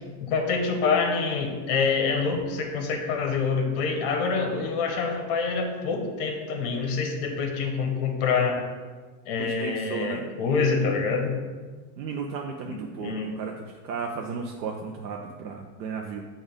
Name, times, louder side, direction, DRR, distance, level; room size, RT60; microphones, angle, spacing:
voice 1, 0.2-8.7 9.3-11.4 12.7-13.3, left 4 dB, 35° left, 4 dB, 0.7 m, -26 dB
voice 2, 9.4-10.2 12.0-13.5 13.8-16.2, right 5 dB, 85° right, 1 dB, 0.7 m, -34 dB
7.3 x 2.6 x 5.0 m, 1.4 s
supercardioid pair, 165°, 50 cm